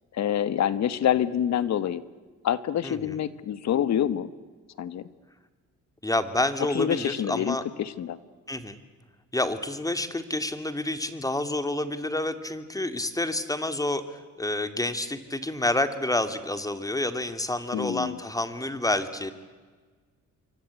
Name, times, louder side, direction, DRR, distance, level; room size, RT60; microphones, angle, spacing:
voice 1, 0.1-2.0 2.4-4.3 4.8-5.0 6.7-8.2 17.7-18.2, left 10 dB, 65° left, 15 dB, 1.4 m, -26 dB
voice 2, 2.8-3.2 6.0-7.6 8.5-8.8 9.3-19.3, left 1 dB, 10° left, 10 dB, 2.4 m, -29 dB
28.0 x 23.5 x 8.3 m, 1.4 s
cardioid pair, 90°, 30 cm